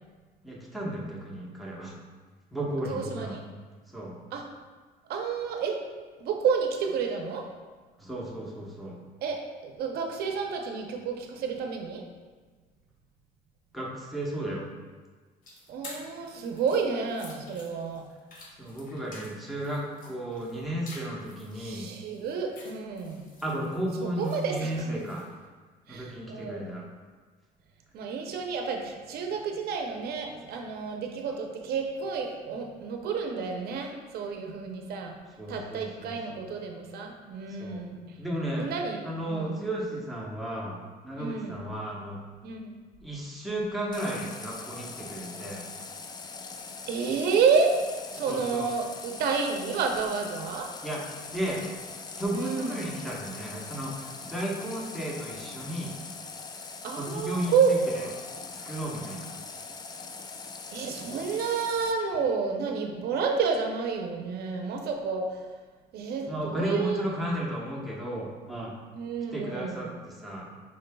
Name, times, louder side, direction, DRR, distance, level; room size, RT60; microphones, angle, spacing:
voice 1, 0.4-1.9 2.5-3.4 3.9-4.1 8.0-9.0 13.7-14.7 18.6-21.9 23.4-25.2 25.9-26.8 35.4-36.5 37.6-37.8 38.2-38.7 39.0-40.8 41.0-42.2 43.0-45.6 48.3-48.7 50.8-51.0 51.3-51.6 52.2-55.9 56.9-57.8 58.5-59.3 66.3-68.7 69.3-70.5, right 1 dB, ahead, -4 dB, 0.9 m, -34 dB
voice 2, 2.9-3.4 4.3-4.5 5.1-5.8 6.2-7.5 9.2-12.0 15.7-18.1 21.5-23.2 23.9-25.0 25.9-26.7 27.9-35.1 35.5-38.2 38.6-39.6 41.2-41.6 42.4-42.8 46.9-47.8 48.1-50.7 52.3-52.9 56.8-58.1 60.7-65.4 65.9-67.1 68.9-70.0, right 5 dB, 70° right, 3 dB, 0.6 m, -30 dB
sound 1, 15.4-25.3, left 2 dB, 55° left, 0.9 m, -50 dB
Water tap faucet, 43.9-61.9, left 4 dB, 25° left, 0.3 m, -42 dB
5.1 x 3.6 x 2.2 m, 1.4 s
cardioid pair, 110°, 17 cm